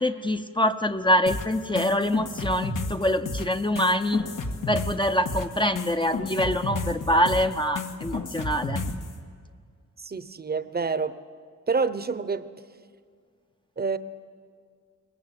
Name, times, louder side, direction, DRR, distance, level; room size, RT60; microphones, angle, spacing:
voice 1, 0.0-4.3 4.7-8.8, equal, 15° left, 6 dB, 0.7 m, -25 dB
sound 1, 1.3-9.1, left 3 dB, 85° left, 1.9 m, -32 dB
voice 2, 10.0-11.2 11.7-12.5 13.8-14.0, right 4 dB, 30° right, 13 dB, 0.9 m, -27 dB
22.5 x 20.0 x 9.0 m, 2.1 s
wide cardioid pair, 125°, 31 cm